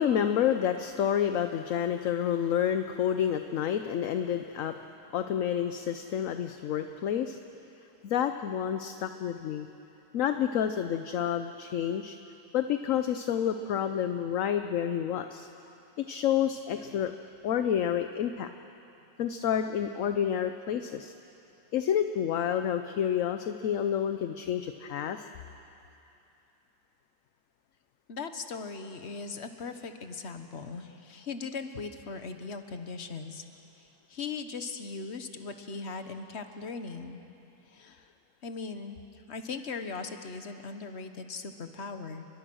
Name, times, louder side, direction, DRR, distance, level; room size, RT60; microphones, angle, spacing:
voice 1, 0.0-4.8 5.1-7.4 8.0-9.7 10.1-12.2 12.5-15.5 16.0-17.1 17.4-18.5 19.2-21.1 21.7-25.3, left 9 dB, 60° left, 8 dB, 1.0 m, -29 dB
voice 2, 28.1-33.5 34.1-37.2 37.7-38.1 38.4-39.0 39.3-42.3, left 4 dB, 45° left, 7 dB, 1.4 m, -39 dB
30.0 x 22.0 x 6.3 m, 2.9 s
omnidirectional pair, 1.8 m